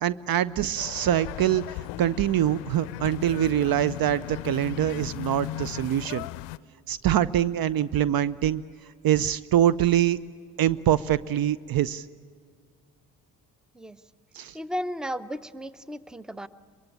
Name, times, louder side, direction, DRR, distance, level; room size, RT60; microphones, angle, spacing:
voice 1, 0.0-6.3 6.9-8.6 9.0-10.2 10.6-12.1 14.3-14.6, right 11 dB, 45° right, 18 dB, 0.6 m, -24 dB
sound 1, 0.8-6.6, left 16 dB, 65° left, 0.6 m, -37 dB
voice 2, 14.5-16.5, equal, ahead, 17 dB, 0.8 m, -34 dB
23.5 x 21.5 x 8.6 m, 2.1 s
hypercardioid pair, 45°, 48 cm